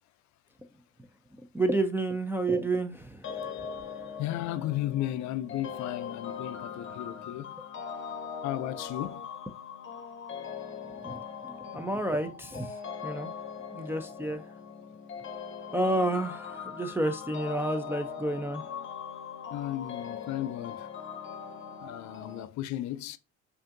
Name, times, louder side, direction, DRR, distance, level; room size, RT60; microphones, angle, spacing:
voice 1, 1.5-3.3 11.0-11.2 11.4-12.7 13.0-13.3 13.7-14.4 15.7-18.6, right 2 dB, 5° right, 0.4 m, -30 dB
sound 1, 3.2-22.5, left 6 dB, 40° left, 0.8 m, -41 dB
voice 2, 4.2-7.5 8.4-9.2 19.5-20.9 21.8-23.2, left 13 dB, 65° left, 0.4 m, -34 dB
5.0 x 2.6 x 2.5 m
supercardioid pair, 85°, 32 cm